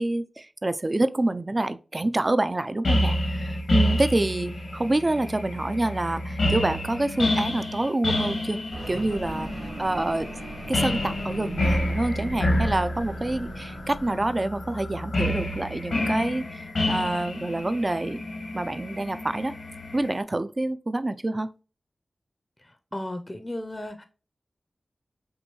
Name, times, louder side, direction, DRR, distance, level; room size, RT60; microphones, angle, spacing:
voice 1, 0.0-8.6 8.9-9.5 9.8-10.3 10.7-18.2 18.5-19.5 19.9-21.5, right 2 dB, 35° right, 0.4 m, -27 dB
sound 1, 2.8-20.1, left 1 dB, 85° left, 1.4 m, -29 dB
sound 2, 8.7-14.2, right 2 dB, 65° right, 1.7 m, -40 dB
voice 2, 22.6-24.0, left 1 dB, 25° left, 0.6 m, -35 dB
6.1 x 2.6 x 3.0 m
wide cardioid pair, 60°, 0 cm